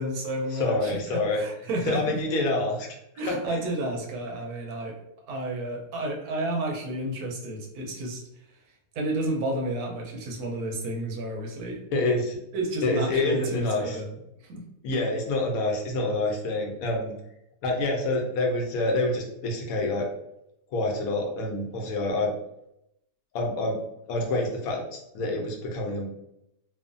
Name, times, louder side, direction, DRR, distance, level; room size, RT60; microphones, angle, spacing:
voice 1, 0.0-2.2 3.2-5.0 5.3-8.2 8.9-11.8 12.5-14.1 14.4-14.6, right 1 dB, 90° right, 1 dB, 1.2 m, -31 dB
voice 2, 0.5-1.4 1.8-2.9 3.3-3.6 11.9-12.4 12.8-14.0 14.8-17.1 17.6-20.1 20.7-22.3 23.3-23.8 24.1-26.1, left 2 dB, 75° left, 1 dB, 1.0 m, -27 dB
3.0 x 2.1 x 2.5 m, 0.81 s
omnidirectional pair, 1.6 m